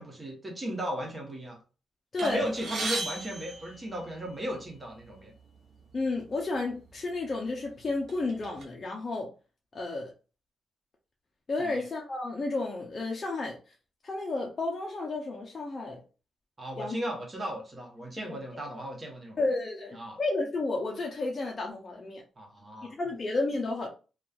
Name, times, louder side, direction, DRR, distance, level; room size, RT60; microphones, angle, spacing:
voice 1, 0.0-1.6 2.2-5.3 11.6-11.8 16.6-19.4 19.9-20.2 22.4-23.0, equal, 25° right, 1 dB, 1.0 m, -36 dB
voice 2, 2.1-2.4 5.9-9.3 9.7-10.1 11.5-13.5 14.0-16.0 16.8-17.0 18.3-18.4 19.4-22.2 23.0-23.9, left 2 dB, 35° left, 0 dB, 0.5 m, -32 dB
sound 1, 2.2-4.5 5.4-5.5 5.8-6.0 6.8-7.0 7.5-8.6, right 2 dB, 60° right, 0.7 m, -36 dB
2.8 x 2.2 x 2.4 m, 0.34 s
cardioid pair, 105°, 0 cm